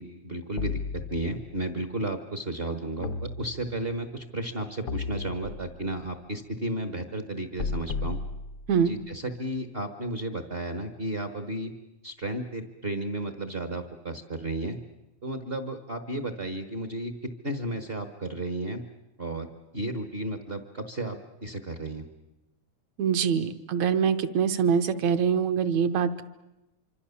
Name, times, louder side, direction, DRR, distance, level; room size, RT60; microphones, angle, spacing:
voice 1, 0.0-8.2 8.9-11.7 12.0-14.8 15.2-18.8 19.2-19.5 19.7-22.1, right 1 dB, 50° right, 8 dB, 0.7 m, -33 dB
sound 1, 0.6-1.6 3.0-4.0 4.9-5.9 7.6-9.0, left 4 dB, 85° left, 0.9 m, -35 dB
voice 2, 23.0-26.2, right 7 dB, 75° right, 9 dB, 2.4 m, -24 dB
26.0 x 25.0 x 7.1 m, 0.95 s
omnidirectional pair, 3.3 m